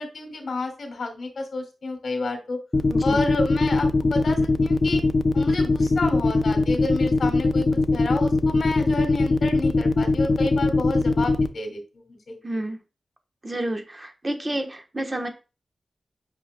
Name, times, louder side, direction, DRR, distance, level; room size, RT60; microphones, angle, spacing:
voice 1, 0.0-2.6 3.0-5.0 5.3-12.4, left 2 dB, 65° left, 4 dB, 2.5 m, -30 dB
sound 1, 2.7-11.5, left 3 dB, 30° left, 0.5 m, -20 dB
voice 2, 2.9-3.2 12.4-12.8 13.4-15.3, right 1 dB, 20° right, 4 dB, 1.1 m, -30 dB
8.5 x 5.8 x 2.2 m, 0.32 s
wide cardioid pair, 170°, 0 cm